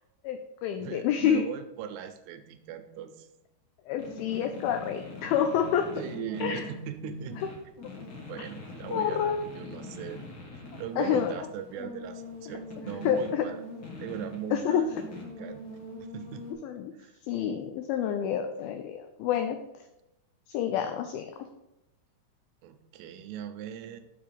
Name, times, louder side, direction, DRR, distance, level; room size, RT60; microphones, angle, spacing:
voice 1, 0.2-1.4 3.9-5.9 6.4-6.7 8.4-8.5 8.9-9.4 10.7-11.3 13.0-13.5 14.5-14.9 16.6-16.9 17.3-19.6 20.5-21.3, left 9 dB, 85° left, 7 dB, 2.1 m, -28 dB
voice 2, 0.8-3.3 5.9-7.4 8.3-10.3 10.8-13.6 14.0-14.9 15.4-15.6 16.0-16.5 17.0-17.1 22.6-24.0, right 8 dB, 80° right, 8 dB, 2.6 m, -39 dB
sound 1, 4.0-16.5, left 2 dB, 50° left, 1.6 m, -43 dB
7.2 x 5.0 x 5.1 m, 0.89 s
omnidirectional pair, 4.8 m